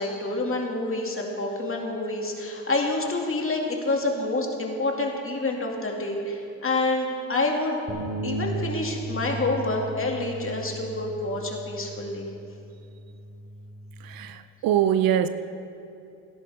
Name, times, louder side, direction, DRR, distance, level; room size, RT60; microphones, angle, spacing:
voice 1, 0.0-7.8 8.2-12.3, left 2 dB, 30° left, 0 dB, 2.4 m, -28 dB
sound 1, 7.9-14.1, right 2 dB, 35° right, 2.8 m, -36 dB
voice 2, 14.0-15.3, right 10 dB, 60° right, 12 dB, 0.6 m, -23 dB
17.5 x 10.5 x 3.6 m, 2.6 s
hypercardioid pair, 50°, 39 cm